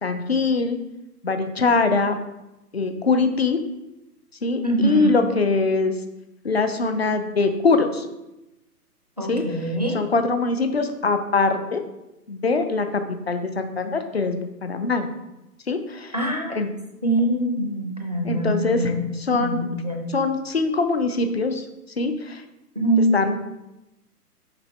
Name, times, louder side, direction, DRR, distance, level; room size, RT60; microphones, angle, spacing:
voice 1, 0.0-0.8 1.2-2.2 2.7-3.6 4.4-5.9 6.4-8.1 9.3-9.4 9.9-11.8 12.3-15.1 15.7-16.1 16.5-16.7 18.2-18.9 19.2-19.7 20.1-21.6 22.0-22.4 23.1-23.4, left 3 dB, 45° left, 7 dB, 0.5 m, -22 dB
voice 2, 4.6-5.1 9.2-10.0 16.1-16.6 17.0-19.0 19.3-20.0 22.8-23.1, right 1 dB, 25° right, 1 dB, 0.5 m, -23 dB
5.9 x 5.1 x 3.2 m, 0.94 s
figure-of-eight pair, 135°, 48 cm